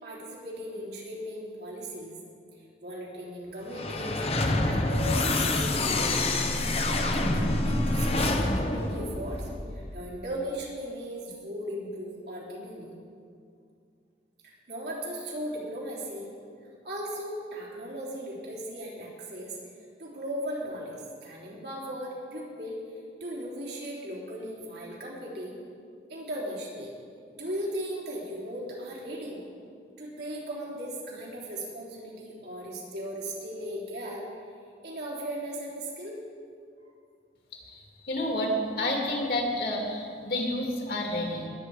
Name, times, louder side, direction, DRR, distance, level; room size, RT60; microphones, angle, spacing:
voice 1, 0.0-2.2 2.8-12.9 14.4-16.3 16.6-19.6 20.0-22.8 23.2-25.6 26.1-26.9 27.3-29.4 30.0-34.3 34.8-36.2, equal, 70° right, -5 dB, 3.6 m, -37 dB
sound 1, 3.7-9.9, left 2 dB, 35° left, 0.9 m, -27 dB
voice 2, 37.6-41.5, left 1 dB, 60° left, -1 dB, 2.4 m, -30 dB
20.5 x 8.6 x 4.8 m, 2.3 s
head